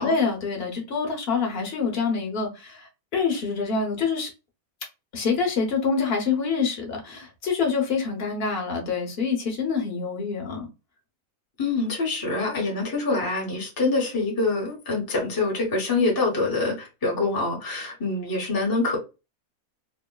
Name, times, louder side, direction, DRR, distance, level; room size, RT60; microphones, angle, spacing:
voice 1, 0.0-4.3 5.1-10.7, left 5 dB, 45° left, 1.0 m, -26 dB
voice 2, 11.6-19.0, left 3 dB, 20° left, 0.7 m, -25 dB
3.7 x 2.0 x 2.2 m
omnidirectional pair, 1.6 m